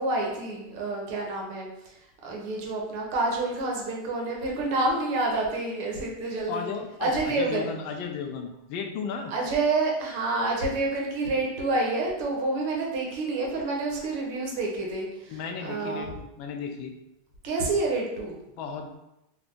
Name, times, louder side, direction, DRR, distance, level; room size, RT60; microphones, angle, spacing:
voice 1, 0.0-2.0 2.2-6.7 7.0-7.7 9.3-16.1 17.4-18.4, right 2 dB, 60° right, -1 dB, 1.0 m, -28 dB
voice 2, 6.5-9.3 15.3-17.0 18.6-19.0, left 6 dB, 55° left, 3 dB, 0.4 m, -35 dB
2.5 x 2.3 x 3.6 m, 0.88 s
hypercardioid pair, 120°, 0 cm